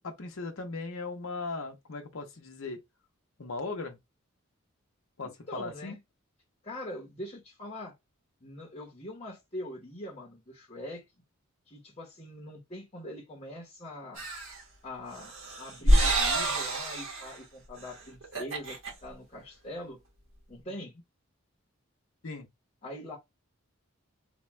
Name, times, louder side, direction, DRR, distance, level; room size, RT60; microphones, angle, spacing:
voice 1, 0.0-2.8 3.4-4.0 5.2-6.0 22.2-22.5, left 3 dB, 75° left, 0.8 m, -38 dB
voice 2, 5.5-6.0 6.6-7.9 8.4-11.0 11.7-14.2 14.8-15.3 15.6-18.8 19.0-20.0 20.5-20.9 22.8-23.2, left 1 dB, 30° left, 0.9 m, -42 dB
sound 1, 14.2-14.6 15.2-17.4 17.8-17.9 18.2-18.9, right 1 dB, 70° right, 1.5 m, -27 dB
3.5 x 2.3 x 3.1 m
head